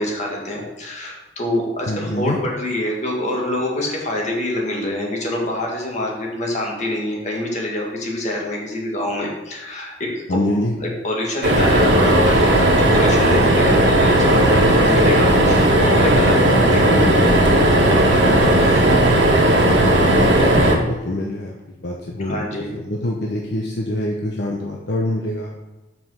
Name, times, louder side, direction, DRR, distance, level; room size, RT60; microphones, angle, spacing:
voice 1, 0.0-10.4 10.8-18.9 22.2-22.8, left 1 dB, 40° left, -2 dB, 1.8 m, -26 dB
voice 2, 1.9-2.4 10.3-10.8 20.2-21.6 21.8-25.5, left 1 dB, 60° left, -1 dB, 0.8 m, -25 dB
sound 1, 11.4-20.7, right 1 dB, 70° right, 1.3 m, -15 dB
5.6 x 5.1 x 6.3 m, 1.0 s
head